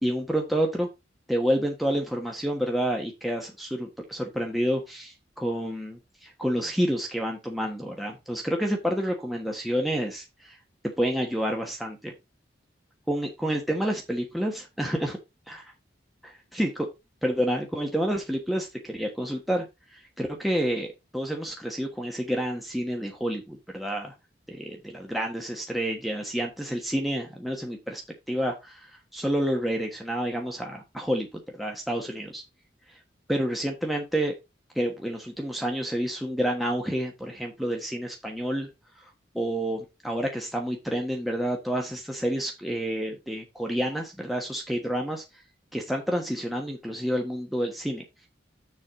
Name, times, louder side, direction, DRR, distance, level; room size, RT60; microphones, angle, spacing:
voice 1, 0.0-0.9 1.3-10.6 11.0-12.1 13.1-15.2 15.5-15.6 16.5-16.9 17.2-19.7 19.9-20.9 21.1-24.1 24.5-28.0 28.3-32.4 33.3-34.3 34.7-38.7 39.3-45.2 45.7-48.0, equal, ahead, 0 dB, 1.2 m, -29 dB
7.1 x 4.7 x 4.9 m, 0.23 s
head